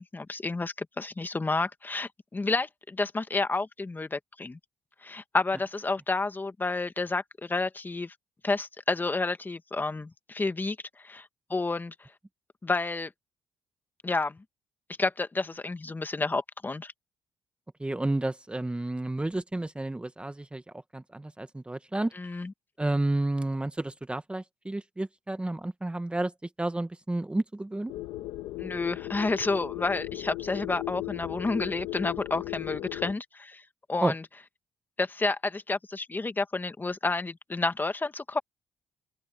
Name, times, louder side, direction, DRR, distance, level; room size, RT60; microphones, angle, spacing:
voice 1, 0.0-4.6 5.0-8.1 8.4-11.9 12.6-13.1 14.0-14.4 15.0-16.9 22.1-22.5 28.6-33.6 33.9-34.2 35.0-38.4, left 3 dB, 25° left, 1.6 m, -30 dB
voice 2, 17.8-20.6 20.9-22.1 22.8-26.3 26.6-27.9 34.0-34.1, right 2 dB, 15° right, 1.1 m, -31 dB
sound 1, 27.9-33.1, left 17 dB, 90° left, 1.2 m, -37 dB
open air
cardioid pair, 75°, 8 cm